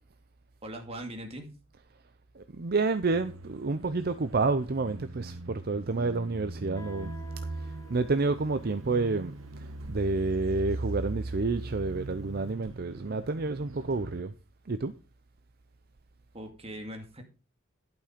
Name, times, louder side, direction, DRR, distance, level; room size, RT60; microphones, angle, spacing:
voice 1, 0.6-1.5 16.3-17.2, right 1 dB, 30° right, 2.2 m, -40 dB
voice 2, 2.4-7.1 7.9-9.3 9.6-14.3 14.7-14.9, right 3 dB, 50° right, 0.6 m, -29 dB
sound 1, 3.1-14.2, right 2 dB, 85° right, 0.9 m, -40 dB
Guitar, 6.8-12.2, right 1 dB, 15° left, 1.8 m, -53 dB
11.5 x 6.2 x 5.1 m
head